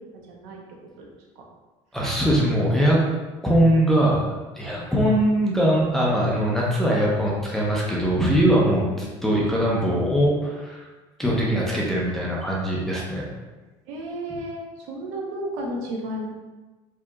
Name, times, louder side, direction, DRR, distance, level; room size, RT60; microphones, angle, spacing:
voice 1, 0.3-0.6 1.0-1.1 4.9-5.1 8.8-9.0 11.2-11.7 13.9-16.3, right 1 dB, 75° right, -1 dB, 0.9 m, -33 dB
voice 2, 1.9-3.0 3.4-4.3 4.5-10.9 11.2-13.2, equal, 5° left, -5 dB, 0.5 m, -21 dB
4.6 x 2.7 x 2.3 m, 1.2 s
cardioid pair, 170°, 12 cm